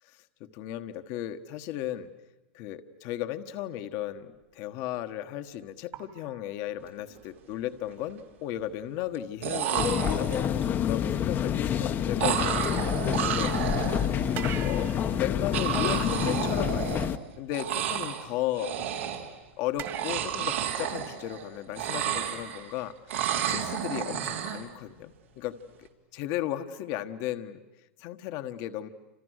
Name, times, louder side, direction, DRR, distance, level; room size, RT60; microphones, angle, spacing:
voice 1, 0.1-2.1 2.5-12.9 13.2-13.5 14.6-17.0 17.4-18.7 19.6-22.9 23.4-25.5 25.8-25.9 26.1-27.6 28.0-28.9, left 12 dB, 50° left, 8 dB, 1.4 m, -35 dB
sound 1, 4.7-5.0 5.9-7.3 8.5-8.6 9.0-9.2 12.6-13.8 14.3-16.4 19.8-21.6, right 10 dB, 40° right, 2.1 m, -44 dB
sound 2, 7.0-7.2 7.5-8.1 9.1-9.2 9.4-10.6 12.2-14.4 15.5-17.3 17.5-18.3 18.5-19.4 19.8-21.4 21.7-22.7 23.1-24.6, right 9 dB, 90° right, 3.7 m, -31 dB
sound 3, 9.8-17.2, left 9 dB, 30° left, 1.0 m, -28 dB
29.5 x 27.0 x 6.5 m, 1.0 s
supercardioid pair, 130°, 7 cm